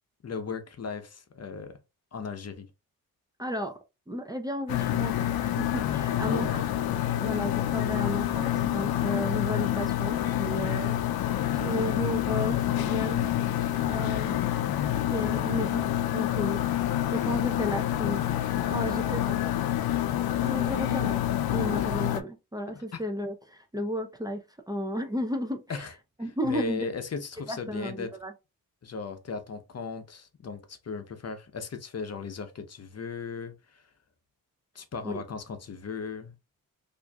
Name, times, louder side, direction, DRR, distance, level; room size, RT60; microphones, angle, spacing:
voice 1, 0.2-1.8 2.1-2.7 6.3-6.5 22.9-23.0 25.7-25.9 26.4-28.1 28.8-33.8 34.7-36.3, left 5 dB, 45° left, 0.8 m, -37 dB
voice 2, 3.4-3.8 4.1-6.5 7.2-10.9 11.5-13.3 13.9-14.4 15.1-15.8 16.1-16.6 17.1-19.4 20.4-24.4 24.7-25.9 26.2-26.9 27.5-28.3 35.0-35.2, equal, 10° right, 0.6 m, -33 dB
sound 1, 4.7-22.2, left 12 dB, 75° left, 0.5 m, -27 dB
4.4 x 2.6 x 2.3 m
cardioid pair, 65°, 36 cm